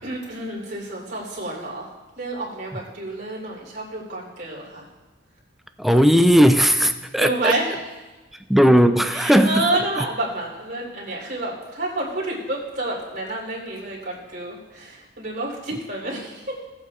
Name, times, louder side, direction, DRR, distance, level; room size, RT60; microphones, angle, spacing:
voice 1, 0.0-1.9 2.1-4.8 7.2-7.8 9.1-16.6, right 2 dB, 50° right, -2 dB, 3.3 m, -29 dB
voice 2, 5.8-7.5 8.5-9.7 10.0-10.1, equal, ahead, 8 dB, 0.3 m, -16 dB
19.0 x 8.3 x 2.4 m, 1.2 s
head